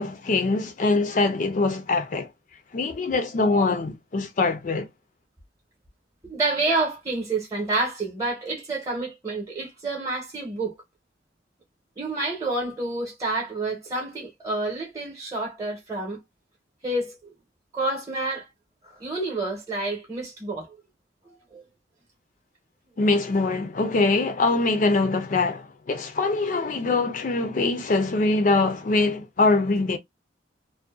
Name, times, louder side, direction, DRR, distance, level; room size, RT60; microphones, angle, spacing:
voice 1, 0.0-2.3 2.7-4.9 23.0-30.0, left 3 dB, 45° left, 0.4 m, -23 dB
voice 2, 6.2-10.7 12.0-16.2 16.8-17.3 17.7-18.5 18.8-20.8 21.2-21.6, right 2 dB, 20° right, 0.8 m, -29 dB
2.6 x 2.1 x 2.2 m
head